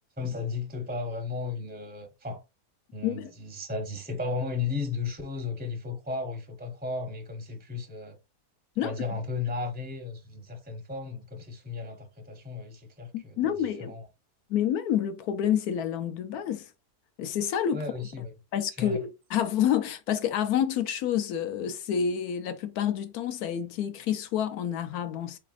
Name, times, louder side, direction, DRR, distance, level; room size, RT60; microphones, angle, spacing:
voice 1, 0.2-2.4 2.9-8.2 8.8-13.5 13.8-14.1 17.7-18.3 18.8-19.0, left 4 dB, 10° right, 0.5 m, -34 dB
voice 2, 13.1-13.9 14.5-16.7 17.2-17.8 18.5-25.4, left 9 dB, 85° left, 1.2 m, -28 dB
3.9 x 3.2 x 2.5 m
omnidirectional pair, 1.6 m